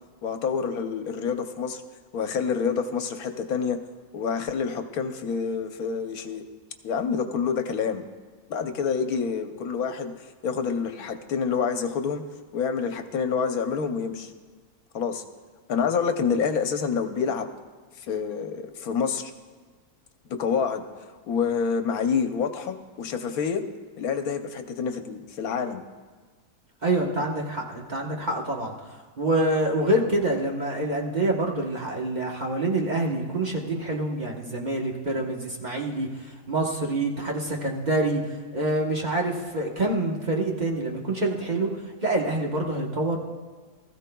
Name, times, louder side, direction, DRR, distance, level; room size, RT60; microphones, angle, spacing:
voice 1, 0.2-1.8 2.1-3.8 4.1-6.4 6.8-8.0 8.5-12.2 12.5-14.3 14.9-15.2 15.7-17.5 18.0-19.3 20.3-23.6 24.0-25.8, left 6 dB, 80° left, 7 dB, 1.3 m, -27 dB
voice 2, 26.8-28.7 29.2-38.2 38.5-41.7 42.0-43.2, right 2 dB, 35° right, -1 dB, 1.2 m, -26 dB
19.5 x 14.0 x 2.3 m, 1.4 s
omnidirectional pair, 1.5 m